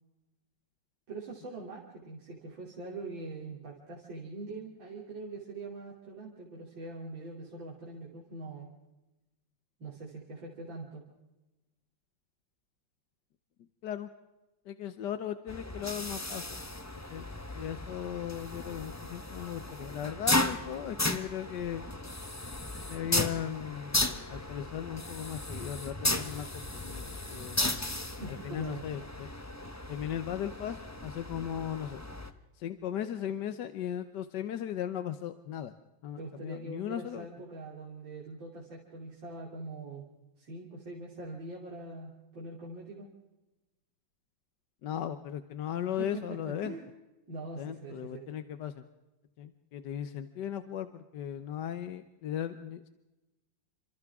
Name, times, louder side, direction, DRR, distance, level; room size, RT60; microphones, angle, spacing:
voice 1, 1.1-8.7 9.8-11.0 28.0-28.9 36.2-40.1 40.4-43.1 46.0-46.9 47.3-48.3, right 3 dB, 85° right, -4 dB, 3.8 m, -43 dB
voice 2, 14.7-16.4 17.1-17.3 17.5-21.8 22.9-24.0 24.3-27.7 28.4-29.3 29.9-32.0 32.6-35.7 36.0-37.3 44.8-46.7 47.6-48.8 49.4-52.9, left 10 dB, 65° left, 11 dB, 1.4 m, -37 dB
sound 1, 15.5-32.3, left 2 dB, 10° left, 0.8 m, -35 dB
29.0 x 26.5 x 3.6 m, 1.0 s
omnidirectional pair, 2.1 m